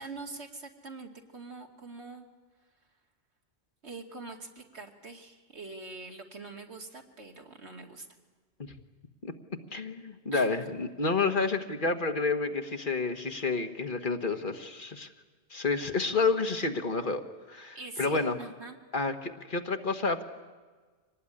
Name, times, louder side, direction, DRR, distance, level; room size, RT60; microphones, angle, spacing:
voice 1, 0.0-2.3 3.8-8.1 10.3-10.7 17.7-18.8, right 3 dB, 80° right, 3 dB, 2.7 m, -44 dB
voice 2, 9.7-15.1 15.5-17.2 17.5-18.4 18.9-20.2, left 4 dB, 50° left, 7 dB, 1.6 m, -30 dB
25.0 x 19.0 x 10.0 m, 1.4 s
omnidirectional pair, 1.1 m